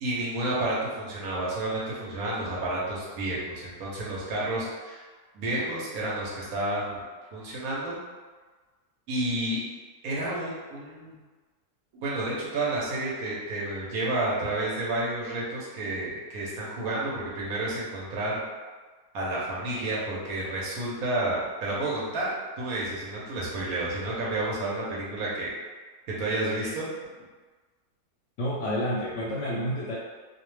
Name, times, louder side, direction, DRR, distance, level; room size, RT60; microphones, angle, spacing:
voice 1, 0.0-5.0 5.3-7.0 7.3-8.0 9.1-9.6 10.0-11.2 11.9-18.4 19.1-22.3 22.6-25.5 26.2-26.9, right 2 dB, 70° right, -5 dB, 1.1 m, -30 dB
voice 2, 28.4-30.0, equal, 65° left, -7 dB, 0.8 m, -29 dB
2.6 x 2.1 x 3.1 m, 1.4 s
omnidirectional pair, 1.7 m